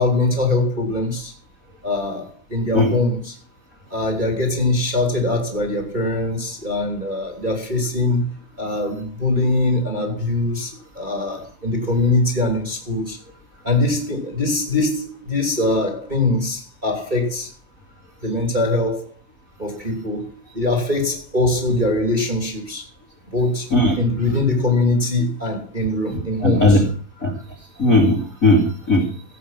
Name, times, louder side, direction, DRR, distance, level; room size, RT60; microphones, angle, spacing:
voice 1, 0.0-1.3 1.8-3.3 3.9-8.3 8.6-13.2 13.6-17.5 18.2-19.1 19.6-22.8 23.3-23.7 24.0-26.8, left 2 dB, 15° right, 2.8 m, -22 dB
voice 2, 26.4-26.8 27.2-27.3 27.8-29.0, left 2 dB, 25° left, 2.6 m, -16 dB
17.5 x 8.1 x 5.9 m
omnidirectional pair, 4.3 m